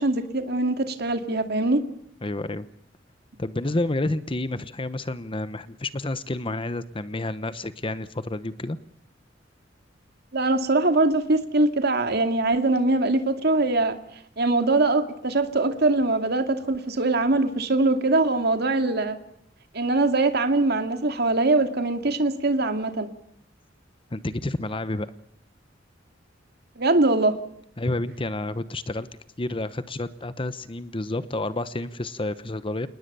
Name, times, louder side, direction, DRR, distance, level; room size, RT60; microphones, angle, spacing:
voice 1, 0.0-1.8 10.3-14.0 14.4-19.2 19.7-23.1 26.8-27.3, right 2 dB, 60° right, 7 dB, 2.4 m, -22 dB
voice 2, 2.2-2.7 3.4-8.8 24.1-25.1 27.8-29.1 29.4-32.9, left 2 dB, 30° left, 13 dB, 0.9 m, -29 dB
28.0 x 20.0 x 6.9 m, 0.72 s
head